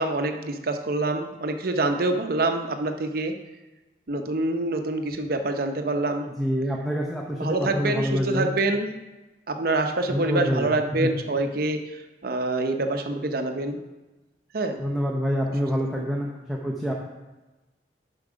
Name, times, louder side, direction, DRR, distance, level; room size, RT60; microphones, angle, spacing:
voice 1, 0.0-3.3 4.1-6.3 7.3-8.9 9.5-13.8 14.5-14.8 15.8-16.1, right 2 dB, 55° right, 6 dB, 0.7 m, -26 dB
voice 2, 6.2-8.5 10.1-10.7 11.0-11.1 14.8-16.9, equal, ahead, -2 dB, 0.7 m, -26 dB
7.2 x 5.4 x 5.0 m, 1.1 s
head